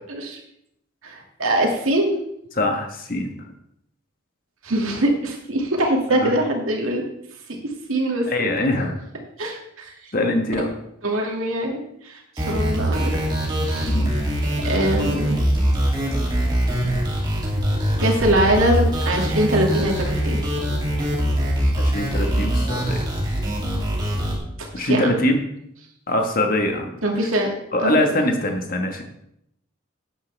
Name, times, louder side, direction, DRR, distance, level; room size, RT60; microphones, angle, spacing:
voice 1, 0.1-0.4 1.0-2.1 4.6-7.0 7.9-8.5 9.4-10.1 11.0-13.2 13.6-14.0 14.4-15.4 17.3-17.4 18.0-20.4 24.6-25.1 27.0-27.5 27.8-28.0, right 1 dB, 85° right, 0 dB, 2.3 m, -23 dB
voice 2, 2.6-3.3 6.2-6.3 8.3-9.0 10.1-10.7 13.8-14.1 21.8-23.1 24.7-25.5 26.1-27.0 27.7-29.0, left 1 dB, 45° left, 3 dB, 1.4 m, -23 dB
sound 1, 12.4-24.3, equal, 20° right, 2.7 m, -23 dB
12.5 x 9.4 x 3.4 m, 0.79 s
head